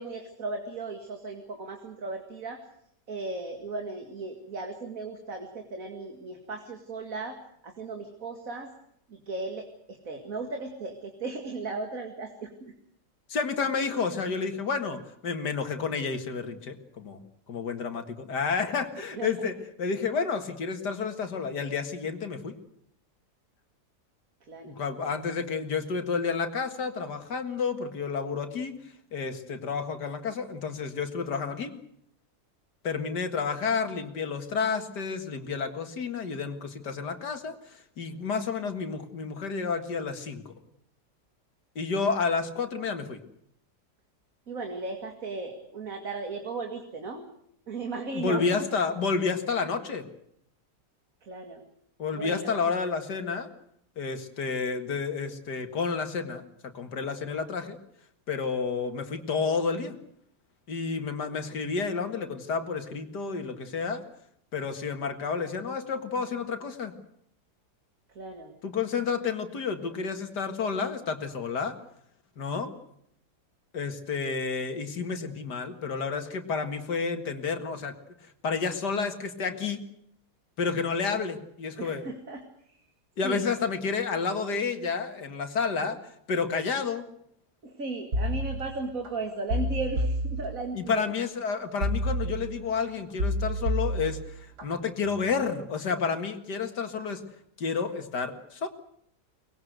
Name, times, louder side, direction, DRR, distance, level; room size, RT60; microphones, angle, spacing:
voice 1, 0.0-2.6 3.1-7.4 7.6-8.7 9.1-12.7 19.1-19.3 24.5-24.7 44.5-47.2 47.7-48.7 51.2-51.6 52.1-52.5 68.2-68.5 81.8-82.4 83.2-83.5 87.6-91.0, right 3 dB, 55° right, 4 dB, 2.5 m, -36 dB
voice 2, 13.3-17.2 17.5-22.6 24.6-28.7 29.1-31.7 32.8-40.5 41.8-43.2 48.1-50.0 52.0-53.5 54.0-56.4 56.7-57.8 58.3-60.0 60.7-64.0 64.5-66.9 68.6-71.8 72.4-72.7 73.7-77.9 78.4-79.8 80.6-82.1 83.2-86.0 86.3-87.0 90.7-97.2 97.6-98.7, left 5 dB, 85° left, 7 dB, 2.5 m, -30 dB
sound 1, 88.1-89.1 89.5-91.0 91.8-92.8 93.2-94.6 95.1-95.4, equal, 85° right, 4.4 m, -30 dB
23.5 x 20.0 x 8.0 m, 0.73 s
omnidirectional pair, 1.7 m